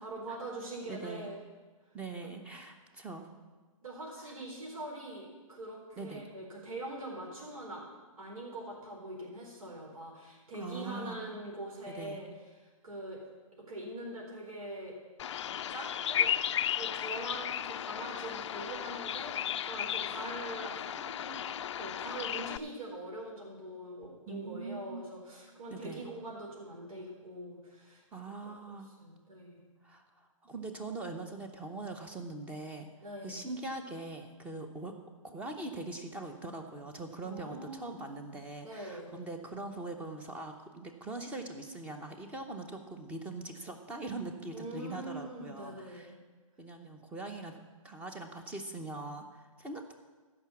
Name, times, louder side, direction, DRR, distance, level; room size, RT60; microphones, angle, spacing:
voice 1, 0.0-1.4 2.2-2.3 3.8-7.8 8.2-12.3 12.8-13.2 13.7-14.9 15.7-16.3 16.7-21.4 21.8-29.6 33.0-33.5 37.2-38.0 38.6-39.1 44.5-46.1, right 1 dB, 80° right, -3 dB, 4.0 m, -43 dB
voice 2, 0.9-1.3 1.9-3.3 4.3-4.4 6.0-6.2 10.5-11.2 11.9-12.2 24.3-25.0 25.7-26.1 28.1-28.9 29.8-32.9 33.2-34.9 35.2-46.1 46.6-47.6 47.8-49.9, right 2 dB, 10° right, 5 dB, 0.8 m, -42 dB
Bird vocalization bird call bird song, 15.2-22.6, left 10 dB, 55° left, 0.4 m, -35 dB
14.0 x 6.0 x 7.2 m, 1.3 s
hypercardioid pair, 155°, 18 cm